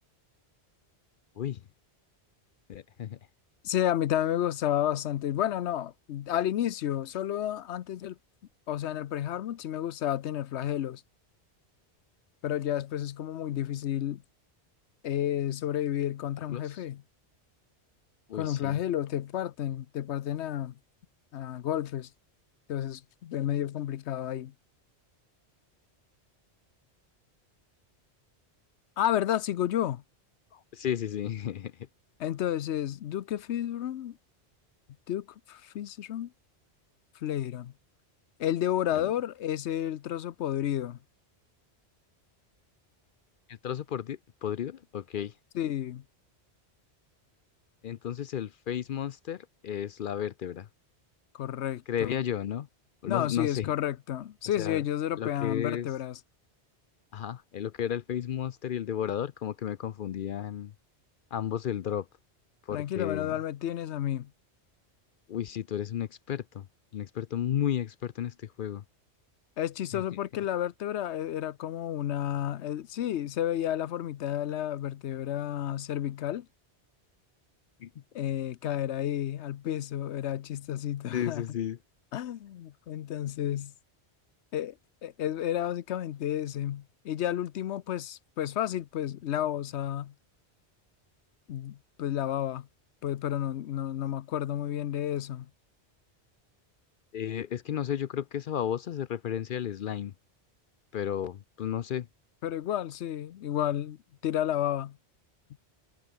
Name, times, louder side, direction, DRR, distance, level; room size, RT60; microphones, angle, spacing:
voice 1, 2.7-3.2 16.5-16.8 18.3-18.8 30.5-31.7 39.0-39.1 43.5-45.3 47.8-50.7 51.9-52.7 53.0-53.7 54.6-54.8 55.2-55.9 57.1-60.7 61.3-62.1 62.7-63.4 65.3-66.7 66.9-68.8 69.9-70.0 77.8-77.9 81.1-81.8 97.1-100.1 100.9-102.1, left 10 dB, 60° left, 0.6 m, -33 dB
voice 2, 3.6-8.2 8.7-11.0 12.4-14.2 15.0-17.0 18.3-20.7 21.3-22.1 22.7-24.5 29.0-30.0 32.2-34.2 35.1-36.3 37.2-37.7 38.4-41.0 45.5-46.0 51.3-52.2 53.1-56.2 62.7-64.3 69.6-76.5 78.1-81.4 82.1-83.7 84.5-84.7 85.0-90.1 91.5-92.7 93.0-95.5 102.4-104.0 104.2-105.0, left 11 dB, 85° left, 1.0 m, -31 dB
omnidirectional pair, 1.1 m